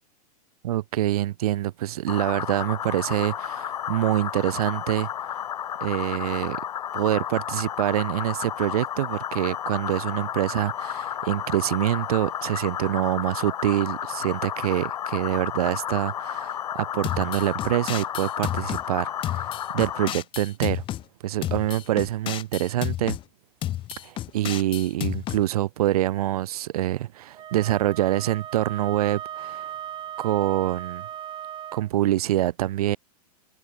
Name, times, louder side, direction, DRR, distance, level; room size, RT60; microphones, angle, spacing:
voice 1, 0.6-5.1 5.8-6.6 6.9-19.5 19.7-20.8 21.2-23.2 24.0-29.7 30.2-31.1 31.7-33.0, right 14 dB, 70° right, 1.6 m, -25 dB
sound 1, 2.1-20.1, left 10 dB, 90° left, 2.0 m, -32 dB
sound 2, 17.0-18.8 19.2-21.0 21.4-23.2 23.6-25.4, left 13 dB, 25° left, 0.8 m, -31 dB
Wind instrument woodwind instrument, 27.3-31.9, right 10 dB, 25° right, 3.5 m, -37 dB
hypercardioid pair, 135°, 20 cm